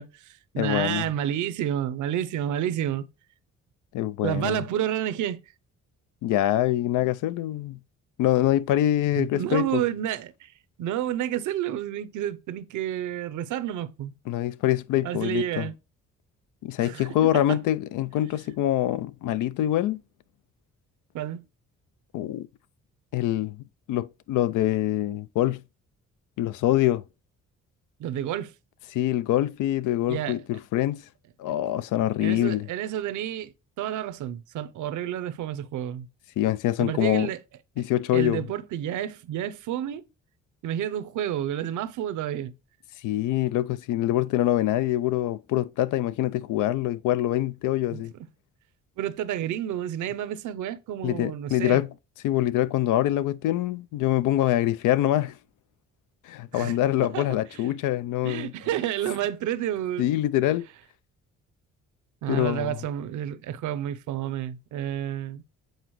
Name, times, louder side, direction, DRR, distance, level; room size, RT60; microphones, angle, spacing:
voice 1, 0.0-3.1 4.2-5.4 9.2-10.5 10.8-14.1 15.0-15.7 16.8-17.1 17.3-17.6 21.1-21.4 28.0-28.5 30.1-30.4 32.2-33.5 33.8-36.1 36.8-37.4 38.1-40.1 40.6-42.5 47.9-48.0 49.0-51.8 56.5-56.8 57.1-57.3 57.5-57.6 58.2-60.1 62.2-65.4, right 11 dB, 75° right, 0.7 m, -30 dB
voice 2, 0.6-1.1 3.9-4.6 6.2-7.8 8.2-9.8 14.3-15.7 16.6-20.0 22.1-22.5 23.1-23.6 23.9-25.6 26.4-27.0 28.9-31.0 31.4-32.7 36.4-37.3 37.8-38.4 43.0-48.1 51.0-51.9 52.2-55.4 56.2-58.5 60.0-60.7 62.3-62.8, left 13 dB, 85° left, 0.5 m, -25 dB
8.0 x 4.0 x 3.0 m
cardioid pair, 90°, 30 cm